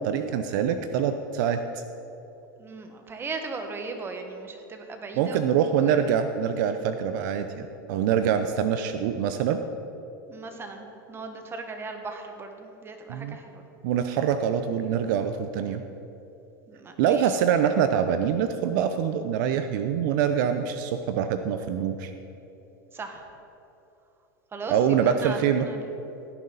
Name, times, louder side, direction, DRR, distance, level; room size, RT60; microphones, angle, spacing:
voice 1, 0.0-1.6 5.2-9.6 13.1-13.4 13.8-15.8 17.0-22.1 24.7-25.7, right 8 dB, 65° right, 9 dB, 0.7 m, -25 dB
voice 2, 2.6-6.2 10.2-13.6 16.7-17.3 22.9-23.2 24.5-24.8 25.0-25.9, right 3 dB, 20° right, 5 dB, 1.4 m, -38 dB
16.5 x 9.5 x 4.0 m, 3.0 s
supercardioid pair, 120°, 11 cm